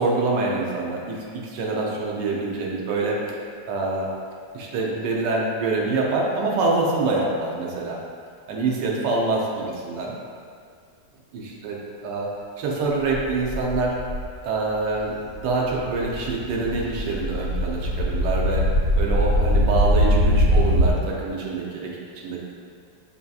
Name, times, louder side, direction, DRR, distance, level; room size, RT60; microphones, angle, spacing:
voice 1, 0.0-3.2 3.7-4.1 4.5-8.0 8.5-10.1 11.3-12.3 12.6-14.0 14.4-21.9 22.2-22.4, right 3 dB, 80° right, -2 dB, 1.3 m, -25 dB
sound 1, 13.1-14.2 14.9-15.0 15.3-20.9, equal, 30° right, 1.2 m, -22 dB
6.5 x 2.7 x 2.3 m, 2.1 s
omnidirectional pair, 1.9 m